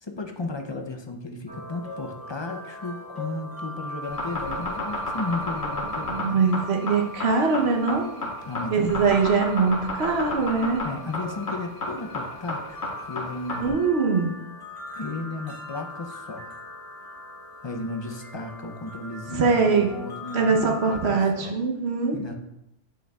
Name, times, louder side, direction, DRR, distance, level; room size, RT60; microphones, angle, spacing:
voice 1, 0.0-6.4 8.5-9.1 10.8-12.8 13.1-13.8 14.9-16.5 17.6-21.5 22.1-22.3, left 3 dB, 35° left, 4 dB, 0.5 m, -34 dB
sound 1, 1.5-21.2, left 1 dB, 20° right, 1.6 m, -41 dB
sound 2, 4.0-13.7, left 2 dB, 85° left, 1.4 m, -31 dB
voice 2, 6.0-8.0 8.7-10.8 13.6-14.3 19.3-19.9 20.3-22.2, right 4 dB, 80° right, 2 dB, 1.1 m, -22 dB
7.7 x 6.3 x 2.3 m, 0.86 s
omnidirectional pair, 1.1 m